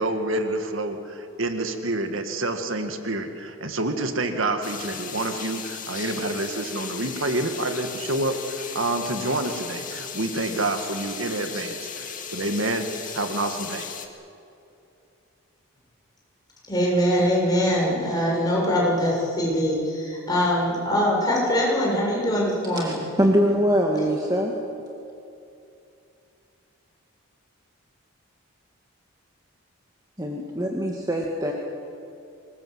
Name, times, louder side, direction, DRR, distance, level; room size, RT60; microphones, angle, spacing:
voice 1, 0.0-13.9, right 2 dB, 65° right, 6 dB, 1.8 m, -28 dB
sound 1, 4.6-14.1, left 7 dB, 40° left, 2.2 m, -36 dB
voice 2, 16.7-23.0, equal, 20° left, -3 dB, 7.1 m, -23 dB
voice 3, 23.2-24.5 30.2-31.5, equal, 15° right, 0 dB, 1.8 m, -23 dB
25.5 x 21.0 x 8.0 m, 2.6 s
head